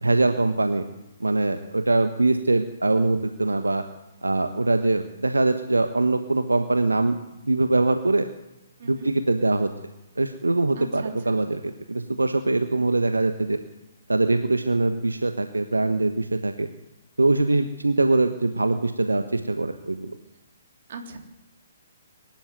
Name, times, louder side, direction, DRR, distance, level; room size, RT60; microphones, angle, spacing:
voice 1, 0.0-0.9 1.2-3.8 4.2-7.2 7.5-8.3 8.8-9.7 10.2-11.6 11.9-13.6 14.1-16.7 17.2-20.2, right 2 dB, 80° right, 8 dB, 1.3 m, -22 dB
voice 2, 10.7-11.5 20.2-20.3 20.9-21.2, right 4 dB, 50° right, 4 dB, 3.5 m, -39 dB
23.5 x 12.0 x 9.5 m, 0.98 s
figure-of-eight pair, 130°, 0 cm